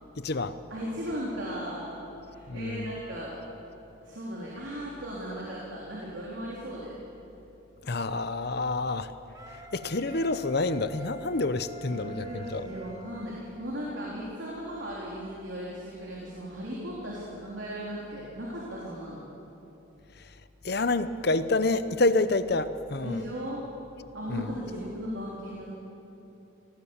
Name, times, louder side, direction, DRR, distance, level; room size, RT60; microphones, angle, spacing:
voice 1, 0.2-0.6 2.5-3.0 7.8-9.1 9.5-12.7 20.1-20.4 20.6-23.2 24.3-24.5, left 2 dB, 50° left, 12 dB, 0.8 m, -28 dB
voice 2, 0.7-3.4 4.0-7.0 11.9-19.2 23.0-23.6 24.1-25.7, equal, 65° right, -5 dB, 3.8 m, -37 dB
Wind instrument woodwind instrument, 9.3-14.1, right 1 dB, 20° right, 1.3 m, -47 dB
25.0 x 18.0 x 7.3 m, 2.9 s
head